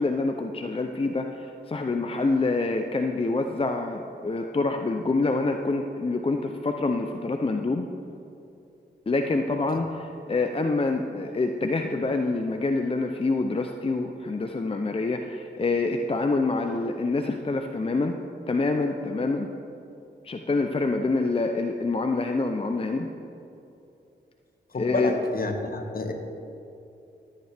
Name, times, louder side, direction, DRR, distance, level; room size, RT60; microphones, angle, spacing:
voice 1, 0.0-7.9 9.1-18.2 18.5-19.5 20.2-23.1 24.8-25.2, left 3 dB, 30° left, 5 dB, 0.6 m, -26 dB
voice 2, 24.7-26.1, left 2 dB, 50° left, 4 dB, 1.2 m, -29 dB
13.5 x 9.2 x 3.5 m, 2.8 s
cardioid pair, 55°, 19 cm